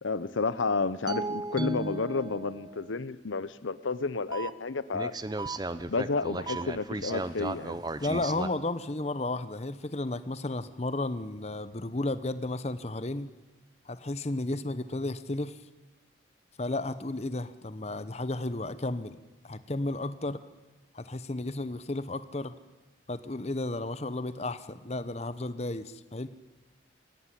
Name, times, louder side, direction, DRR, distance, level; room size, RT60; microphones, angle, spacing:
voice 1, 0.0-5.2 5.9-7.8, left 4 dB, 90° left, 16 dB, 0.9 m, -31 dB
sound 1, 1.1-3.0 4.3-4.5 4.9-8.5, right 2 dB, 20° right, 0.7 m, -35 dB
voice 2, 8.0-13.3 13.9-15.6 16.6-19.2 19.4-20.4 20.9-22.5 23.1-26.3, left 2 dB, 35° left, 13 dB, 0.9 m, -33 dB
22.5 x 17.5 x 10.0 m, 1.2 s
head